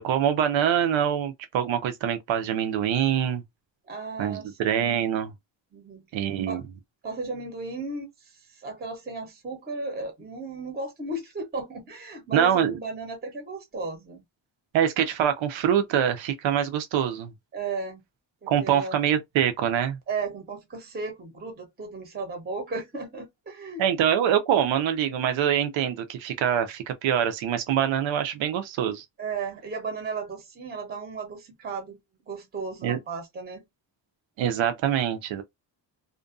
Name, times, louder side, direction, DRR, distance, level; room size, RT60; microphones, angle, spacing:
voice 1, 0.0-3.4 4.2-5.3 6.1-6.6 12.3-12.8 14.7-17.3 18.5-20.0 23.8-29.0 32.8-33.0 34.4-35.4, right 9 dB, 85° right, 0.7 m, -24 dB
voice 2, 3.9-4.5 5.7-6.0 6.5-6.6 7.0-14.2 17.5-18.0 18.4-18.9 20.1-23.8 29.2-32.0 32.3-33.6, right 3 dB, 20° right, 0.7 m, -35 dB
2.5 x 2.2 x 2.4 m
cardioid pair, 125°, 45 cm